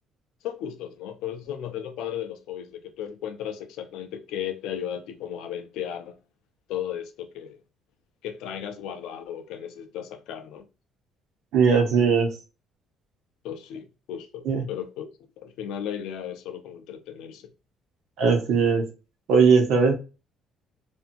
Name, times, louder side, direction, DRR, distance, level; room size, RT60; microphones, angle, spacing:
voice 1, 0.4-6.1 6.7-7.6 8.2-10.7 13.4-15.1 15.4-17.5, left 9 dB, 85° left, 0.5 m, -35 dB
voice 2, 11.5-12.3 14.4-14.6 18.2-18.9 19.3-19.9, right 5 dB, 65° right, 0.9 m, -19 dB
2.7 x 2.5 x 2.5 m
cardioid pair, 160°, 0 cm